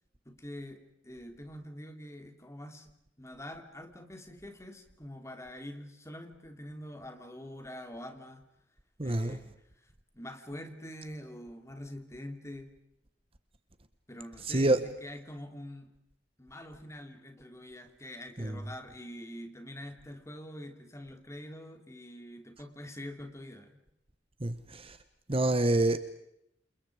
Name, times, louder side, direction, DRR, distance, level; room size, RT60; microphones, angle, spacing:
voice 1, 0.2-2.9 3.2-8.5 9.0-9.5 10.1-12.7 14.1-15.9 16.4-23.8, left 1 dB, 15° left, 3.3 m, -45 dB
voice 2, 9.0-9.4 14.5-14.8 18.4-18.6 24.4-25.0 25.3-26.0, right 2 dB, 35° right, 1.3 m, -27 dB
29.0 x 28.5 x 5.0 m
head